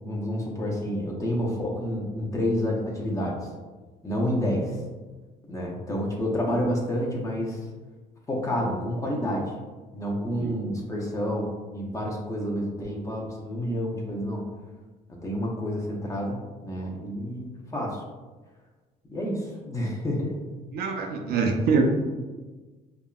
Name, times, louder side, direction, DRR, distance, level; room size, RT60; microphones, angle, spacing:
voice 1, 0.0-3.4 4.0-4.8 5.5-7.7 8.3-9.5 9.9-14.4 15.1-18.0 19.1-20.5, equal, 20° left, -2 dB, 0.6 m, -29 dB
voice 2, 20.7-21.8, right 5 dB, 70° right, 4 dB, 0.4 m, -24 dB
3.5 x 2.1 x 2.3 m, 1.3 s
cardioid pair, 110°, 17 cm